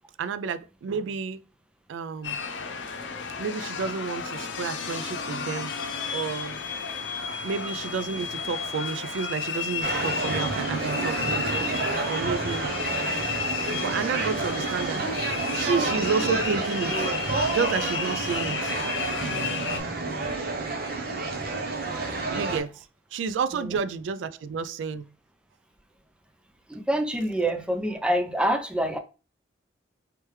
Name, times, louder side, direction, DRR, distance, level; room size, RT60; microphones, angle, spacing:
voice 1, 0.2-1.4 1.9-2.4 3.4-5.7 6.1-6.6 7.4-11.7 12.1-12.6 13.7-15.1 15.5-17.1 17.5-18.7 22.3-22.8 23.1-25.0, right 5 dB, 85° right, 0.3 m, -30 dB
sound 1, 2.2-19.8, left 6 dB, 85° left, 0.6 m, -33 dB
sound 2, 9.8-22.6, right 3 dB, 55° right, 0.8 m, -29 dB
voice 2, 19.4-20.3 23.5-23.8 26.7-29.0, right 1 dB, 5° right, 0.4 m, -27 dB
3.2 x 3.2 x 3.1 m
head